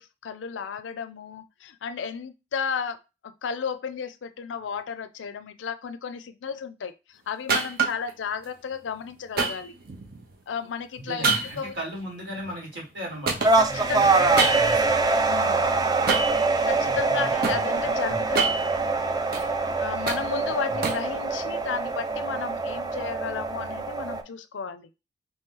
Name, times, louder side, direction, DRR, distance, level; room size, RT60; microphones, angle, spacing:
voice 1, 0.0-3.0 3.4-9.8 10.5-11.3 11.6-11.7 13.6-14.0 15.3-15.7 16.7-18.6 19.8-24.9, left 6 dB, 85° left, 0.4 m, -33 dB
sound 1, 7.5-8.1 9.4-10.3 11.2-13.0 13.3-14.9 16.1-16.5 17.0-17.6 18.2-19.5 19.8-21.1, right 4 dB, 55° right, 0.8 m, -27 dB
voice 2, 11.0-14.9 16.8-17.6 18.1-18.2 20.7-20.8, equal, 75° right, 1.9 m, -37 dB
sound 2, 13.4-24.2, right 3 dB, 20° right, 0.4 m, -24 dB
sound 3, 14.8-15.2 15.5-17.0 17.3-18.8 19.1-20.6 20.9-21.8, left 3 dB, 15° left, 0.8 m, -53 dB
3.1 x 2.8 x 3.7 m
head